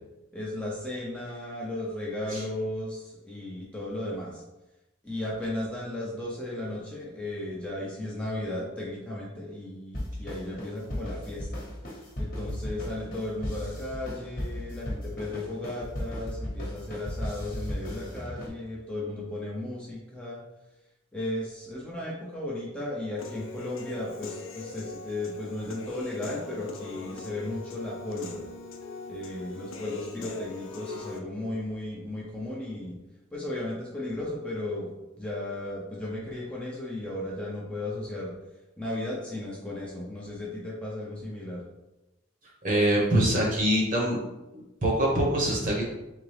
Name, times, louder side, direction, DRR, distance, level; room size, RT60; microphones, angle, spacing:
voice 1, 0.3-4.4 5.0-11.6 12.2-20.4 21.1-28.5 29.1-33.0 33.3-34.9 35.2-38.3 38.8-41.6, left 1 dB, 5° left, -5 dB, 0.7 m, -35 dB
sound 1, 9.9-18.5, left 1 dB, 45° left, 1.1 m, -36 dB
Human voice / Piano, 23.2-31.2, left 3 dB, 85° left, 0.6 m, -42 dB
voice 2, 42.6-44.2 44.5-45.9, right 1 dB, 40° right, -2 dB, 1.2 m, -24 dB
3.7 x 3.6 x 3.4 m, 0.98 s
head